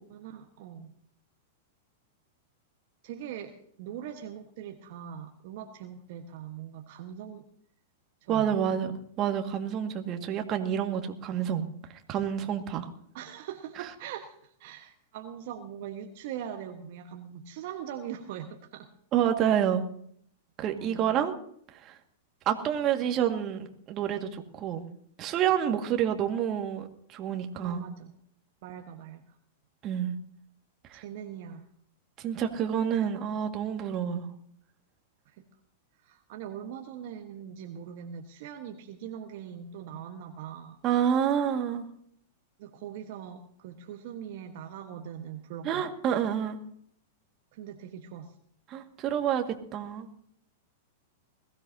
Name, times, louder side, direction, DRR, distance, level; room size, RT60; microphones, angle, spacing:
voice 1, 0.1-0.9 3.0-7.5 8.2-8.6 13.1-18.9 20.7-21.1 27.5-28.2 28.6-29.4 30.9-31.7 35.2-35.4 36.0-40.8 42.6-46.0 47.5-48.3, right 9 dB, 55° right, 4 dB, 1.4 m, -41 dB
voice 2, 8.3-11.7 12.1-12.9 19.1-19.8 20.6-21.4 21.7-22.0 22.5-24.9 25.2-27.8 29.8-30.1 30.9-31.0 32.2-34.3 40.8-41.8 45.6-46.6 48.7-49.4 49.7-50.1, right 9 dB, 35° right, 5 dB, 2.0 m, -28 dB
21.0 x 16.5 x 2.8 m, 0.65 s
hypercardioid pair, 105°, 0 cm